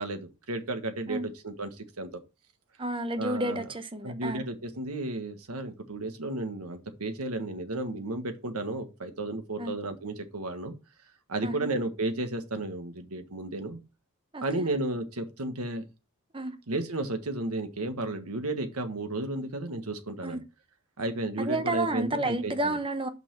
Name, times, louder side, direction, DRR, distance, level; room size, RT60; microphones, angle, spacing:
voice 1, 0.0-2.1 3.2-3.7 4.0-10.7 11.3-13.8 14.4-15.8 16.7-20.4 21.0-22.8, right 2 dB, 90° right, 1.5 m, -33 dB
voice 2, 2.8-4.4 9.6-9.7 11.4-11.7 14.3-14.7 16.3-16.6 20.2-20.4 21.4-23.1, right 1 dB, 25° right, 0.8 m, -31 dB
6.1 x 5.6 x 5.7 m
head